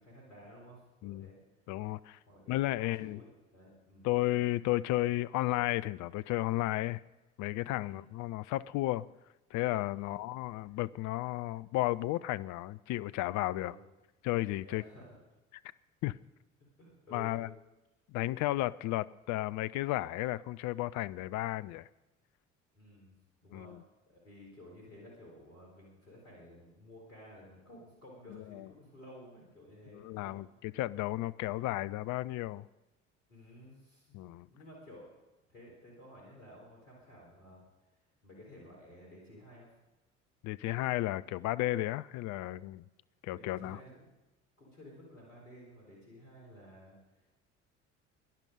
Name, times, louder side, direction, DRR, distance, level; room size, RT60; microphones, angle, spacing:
voice 1, 0.0-1.4 2.3-4.1 7.8-8.1 9.9-10.2 13.6-13.8 14.6-15.2 16.8-17.4 22.7-23.2 23.4-23.8 24.1-30.4 33.3-35.1 35.5-37.6 38.2-39.7 43.3-44.1 44.6-47.3, equal, 85° left, 3.9 m, -54 dB
voice 2, 1.7-2.2 2.5-3.2 4.0-7.0 7.4-9.1 9.5-13.7 14.2-14.8 16.0-16.1 17.1-17.5 18.1-21.9 23.5-23.8 28.3-28.7 29.9-32.7 34.1-34.5 40.4-42.8 43.2-43.8, left 17 dB, 50° left, 0.6 m, -33 dB
18.0 x 11.0 x 5.1 m
figure-of-eight pair, 60°, 38 cm